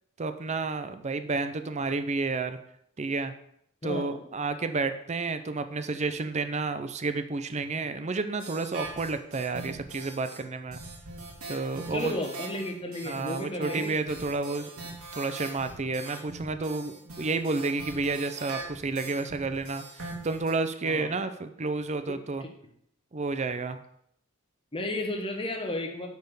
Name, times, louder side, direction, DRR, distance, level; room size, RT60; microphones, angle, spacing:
voice 1, 0.2-2.6 3.0-3.3 3.8-10.8 11.5-12.1 13.0-14.7 15.1-22.4 23.1-23.8, right 3 dB, 30° right, 10 dB, 0.6 m, -31 dB
voice 2, 3.8-4.2 11.9-13.9 20.8-21.1 24.7-26.1, left 1 dB, 25° left, 3 dB, 1.3 m, -33 dB
sound 1, 8.4-10.4 10.7-20.5, right 2 dB, 80° right, 2.7 m, -42 dB
9.4 x 4.3 x 6.8 m, 0.71 s
head